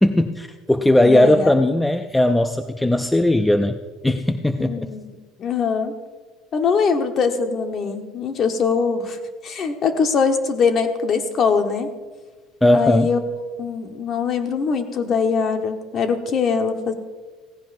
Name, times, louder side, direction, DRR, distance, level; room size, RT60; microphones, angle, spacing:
voice 1, 0.0-3.8 4.0-4.9 12.6-13.1, left 1 dB, 5° left, 8 dB, 0.4 m, -18 dB
voice 2, 1.0-1.5 4.6-5.1 5.4-5.9 6.5-9.2 9.4-11.9 12.7-13.2 13.6-16.9, left 5 dB, 35° left, 6 dB, 1.2 m, -22 dB
16.5 x 15.5 x 2.6 m, 1.4 s
cardioid pair, 150°, 0 cm